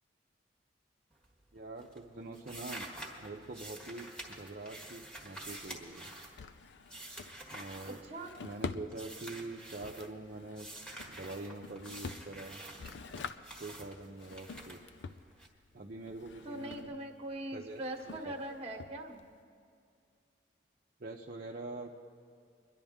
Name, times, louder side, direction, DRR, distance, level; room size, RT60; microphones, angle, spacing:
sound 1, 1.1-1.5 1.8-8.5 8.9-10.1 10.5-15.5, right 1 dB, 5° left, 1.5 m, -48 dB
voice 1, 1.5-2.9 3.2-6.1 7.5-8.0 8.4-10.7 11.1-12.6 13.6-14.8 15.7-16.9 17.5-17.8 18.1-18.4 21.0-22.0, right 2 dB, 50° right, -2 dB, 0.7 m, -44 dB
Drawer open or close, 4.2-19.4, left 4 dB, 70° left, 0.5 m, -48 dB
voice 2, 7.8-8.3 16.4-19.3, right 1 dB, 35° right, 3 dB, 1.4 m, -41 dB
23.5 x 11.0 x 3.6 m, 2.3 s
head